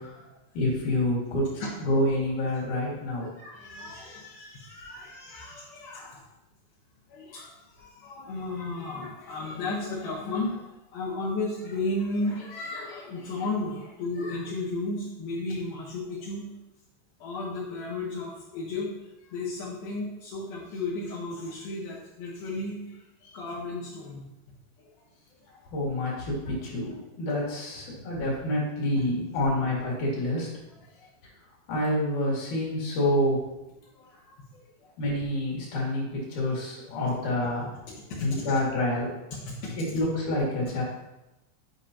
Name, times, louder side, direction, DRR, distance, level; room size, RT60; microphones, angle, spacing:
voice 1, 0.5-1.5 1.9-3.3 25.7-30.5 31.7-33.4 35.0-37.7 38.2-39.1 39.8-40.8, left 1 dB, 55° left, -5 dB, 3.5 m, -27 dB
voice 2, 3.2-6.2 7.1-16.5 17.2-24.2 24.9-25.1 25.4-25.7 27.9-28.0 31.0-31.1 33.9-34.9 36.8-37.1 37.9-38.5 39.3-39.8, left 2 dB, 75° left, -8 dB, 3.0 m, -34 dB
10.5 x 5.3 x 2.9 m, 0.96 s
omnidirectional pair, 4.4 m